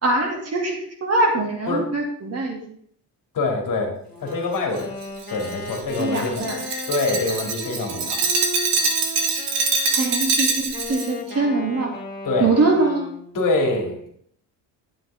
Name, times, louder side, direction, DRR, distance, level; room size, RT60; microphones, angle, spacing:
voice 1, 0.0-2.6 6.0-6.6 9.9-12.0 12.4-13.1, right 2 dB, 35° right, 1 dB, 2.6 m, -22 dB
voice 2, 3.3-3.9 4.2-4.9 5.3-6.5 6.9-8.2 12.2-12.5 13.3-14.0, left 3 dB, 50° left, 2 dB, 2.9 m, -24 dB
Wind instrument woodwind instrument, 4.1-10.2 10.7-13.4, left 1 dB, 25° left, 3.3 m, -36 dB
Glass, 4.8-11.1, right 4 dB, 75° right, 2.4 m, -24 dB
11.5 x 9.3 x 3.6 m, 0.63 s
cardioid pair, 130°, 42 cm